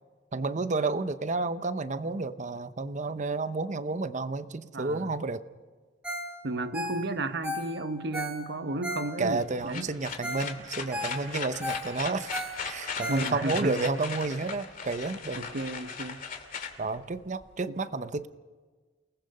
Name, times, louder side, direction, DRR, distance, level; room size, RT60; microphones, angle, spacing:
voice 1, 0.3-5.4 9.2-12.4 12.6-15.5 16.8-18.3, right 3 dB, 40° right, 12 dB, 0.8 m, -31 dB
voice 2, 4.7-5.1 6.4-9.9 13.1-13.8 15.3-16.2 17.7-17.8, right 2 dB, 65° right, 10 dB, 1.0 m, -33 dB
Ringtone, 6.0-6.3 6.6-9.5 9.9-10.0 10.2-10.5 10.8-13.6 14.1-14.2, left 1 dB, 5° right, 3.5 m, -36 dB
sound 1, 9.4-17.5, left 5 dB, 50° left, 2.3 m, -38 dB
29.0 x 19.0 x 5.5 m, 1.4 s
head